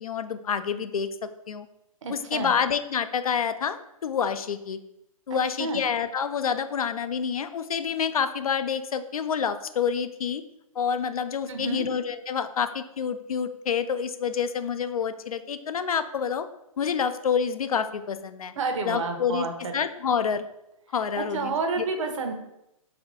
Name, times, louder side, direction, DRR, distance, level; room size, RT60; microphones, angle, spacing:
voice 1, 0.0-1.1 1.5-1.7 2.1-4.8 5.3-10.4 10.8-16.5 16.8-18.5 18.9-19.5 19.7-20.5 20.9-22.1, left 7 dB, 80° left, 11 dB, 0.4 m, -28 dB
voice 2, 2.0-2.6 5.3-5.8 11.5-11.9 18.6-19.7 21.2-22.3, right 4 dB, 60° right, 5 dB, 0.8 m, -30 dB
4.2 x 2.5 x 4.0 m, 0.84 s
hypercardioid pair, 130°, 18 cm